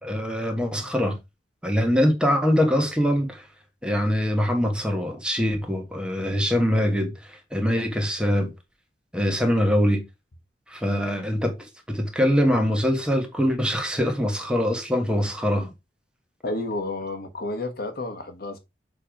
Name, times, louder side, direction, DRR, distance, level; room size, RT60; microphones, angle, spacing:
voice 1, 0.0-1.2 1.6-3.4 3.8-7.1 7.5-8.5 9.1-10.0 10.7-11.6 11.9-15.7, equal, 5° right, 1.5 m, -23 dB
voice 2, 16.4-18.6, left 2 dB, 60° left, 1.3 m, -31 dB
7.0 x 3.3 x 5.1 m
head